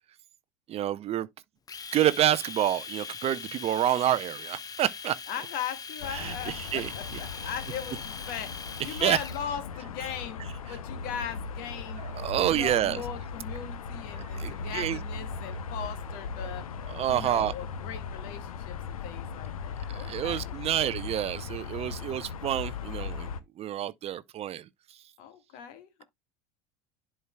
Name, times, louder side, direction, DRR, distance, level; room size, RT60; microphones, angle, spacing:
voice 1, 0.7-1.3 1.9-5.2 6.1-6.9 8.9-9.2 12.0-13.0 14.3-15.0 16.9-17.5 19.9-23.3 23.6-24.7, right 12 dB, 35° right, 0.5 m, -28 dB
Domestic sounds home sounds, 1.7-9.4, left 5 dB, 20° left, 0.8 m, -41 dB
voice 2, 5.3-10.4 10.7-12.0 12.4-16.7 17.1-20.6 25.2-26.0, left 8 dB, 55° left, 1.6 m, -39 dB
sound 1, 6.0-23.4, left 5 dB, 80° left, 0.7 m, -38 dB
11.0 x 4.5 x 2.2 m
hypercardioid pair, 80°, 18 cm